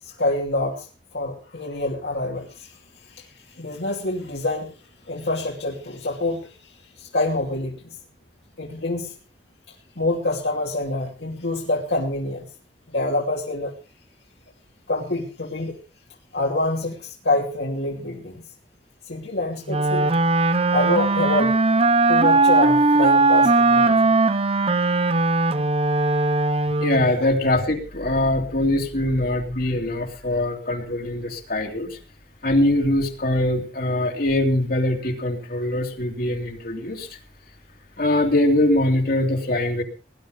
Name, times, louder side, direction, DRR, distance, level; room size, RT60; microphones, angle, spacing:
voice 1, 0.0-0.9 1.1-2.8 3.1-4.7 5.1-7.8 8.6-9.1 10.0-12.5 12.9-13.7 14.9-15.8 16.3-18.4 19.1-20.1 20.7-21.5 22.1-24.1 27.2-27.3, left 2 dB, 75° left, -1 dB, 2.8 m, -26 dB
Wind instrument woodwind instrument, 19.7-27.2, right 3 dB, 35° right, 0.8 m, -19 dB
voice 2, 26.8-32.0 32.4-37.1 38.0-39.8, left 1 dB, 55° left, 3 dB, 2.6 m, -22 dB
19.0 x 11.5 x 5.0 m, 0.34 s
head